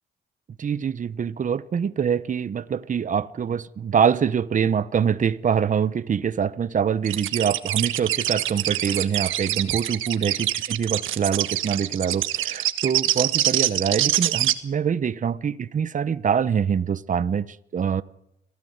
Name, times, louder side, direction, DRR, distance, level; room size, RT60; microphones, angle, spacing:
voice 1, 0.6-18.0, right 7 dB, 40° right, 1.0 m, -24 dB
sound 1, 7.0-14.5, right 13 dB, 85° right, 1.5 m, -25 dB
25.5 x 16.5 x 8.1 m
cardioid pair, 90°, 20 cm